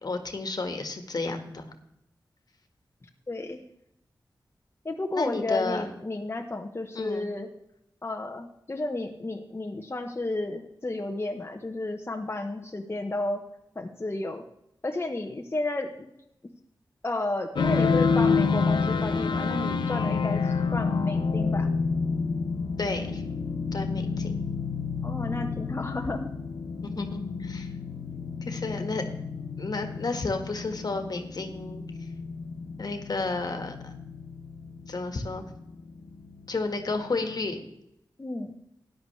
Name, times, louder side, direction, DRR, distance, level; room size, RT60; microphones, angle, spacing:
voice 1, 0.0-1.7 5.1-5.9 6.9-7.3 22.8-23.2 23.7-24.4 26.8-27.7 28.4-29.0 29.6-31.8 32.8-33.9 34.9-35.4 36.5-37.6, left 3 dB, 60° left, 6 dB, 1.6 m, -32 dB
voice 2, 3.3-3.6 4.8-7.5 8.0-13.4 13.7-14.4 14.8-15.9 17.0-21.7 25.0-26.3 38.2-38.6, left 2 dB, 30° left, 3 dB, 1.0 m, -32 dB
sound 1, 17.6-37.5, left 4 dB, 80° left, 0.9 m, -29 dB
14.0 x 10.0 x 3.3 m, 0.81 s
cardioid pair, 50°, 8 cm